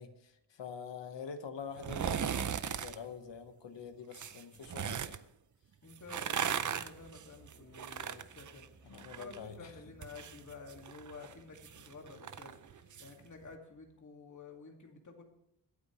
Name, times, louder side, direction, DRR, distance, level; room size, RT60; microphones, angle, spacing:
voice 1, 0.0-5.3 8.8-9.7, left 6 dB, 85° left, 7 dB, 1.3 m, -46 dB
sound 1, 1.8-3.0 4.1-5.2 5.9-9.4 9.7-13.1 13.5-13.6, right 8 dB, 45° right, 0.6 m, -38 dB
voice 2, 5.8-15.2, left 4 dB, 45° left, 2 dB, 2.2 m, -51 dB
Musical instrument, 6.0-13.8, right 1 dB, 60° left, 5.0 m, -64 dB
24.0 x 8.5 x 3.2 m, 0.81 s
wide cardioid pair, 145°, 43 cm